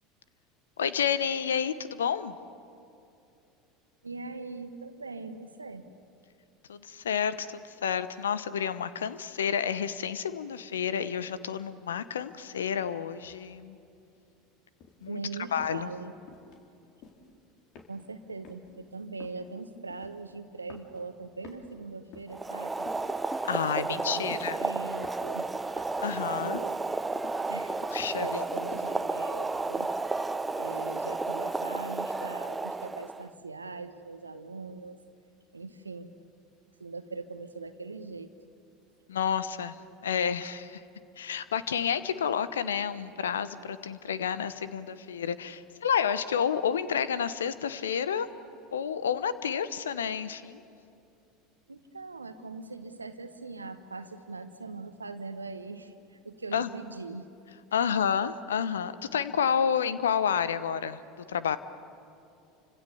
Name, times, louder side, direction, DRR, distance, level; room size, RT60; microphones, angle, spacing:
voice 1, 0.8-2.4 6.7-13.8 15.0-15.2 15.5-15.9 23.4-24.6 26.0-26.6 27.9-28.3 39.1-39.8 40.0-40.8 41.2-48.3 48.7-50.6 56.5-56.7 57.7-61.0 61.3-61.6, left 7 dB, 75° left, 15 dB, 1.0 m, -30 dB
voice 2, 4.0-5.9 15.0-16.2 17.9-22.9 23.8-25.5 26.2-26.7 27.5-27.8 28.2-35.0 35.5-36.1 36.8-38.3 51.7-57.3 57.7-57.8, right 3 dB, 85° right, 10 dB, 1.3 m, -41 dB
sound 1, 14.8-15.1 15.6-15.9 16.3-16.6 17.0-17.3 17.7-18.2 18.4-18.7 19.2-19.5 19.9-20.4 20.7-21.1 21.4-22.4 22.9-23.2 23.6-23.9 24.3-24.7 25.0-25.3 25.8-26.1 26.5-26.9 27.2-27.5 28.0-28.3 28.7-29.1 29.5-29.7, left 5 dB, 50° left, 4.1 m, -50 dB
Boiling, 22.3-33.3, right 3 dB, 15° right, 0.9 m, -32 dB
30.0 x 25.5 x 7.1 m, 2.6 s
figure-of-eight pair, 75°, 0 cm